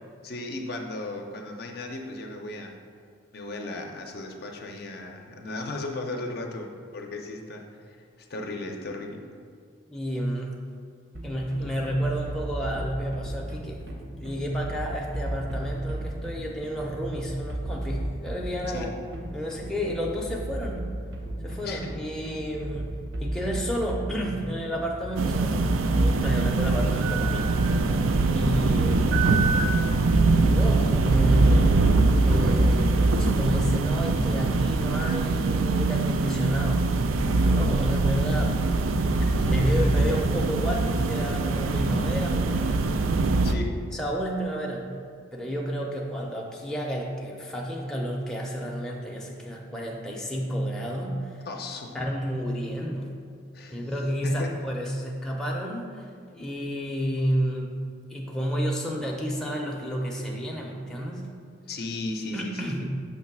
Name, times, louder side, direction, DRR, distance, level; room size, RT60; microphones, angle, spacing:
voice 1, 0.2-2.8 3.3-9.3 18.7-19.0 21.6-22.0 29.2-29.7 39.2-39.9 43.4-43.8 51.5-52.0 53.5-53.9 54.2-54.6 61.7-62.8, left 2 dB, 50° left, 2 dB, 0.6 m, -36 dB
voice 2, 9.9-10.6 11.2-13.8 14.1-18.9 19.3-20.9 21.4-27.5 28.3-29.3 30.4-32.0 32.2-36.9 37.4-38.7 39.3-42.9 43.9-45.0 45.3-51.5 51.9-53.1 53.7-61.3 62.3-62.8, equal, 5° left, -2 dB, 0.6 m, -31 dB
sound 1, 11.1-27.1, right 1 dB, 65° right, 0.9 m, -35 dB
sound 2, 25.2-43.5, right 3 dB, 90° right, 0.4 m, -22 dB
6.6 x 3.1 x 5.9 m, 2.2 s
head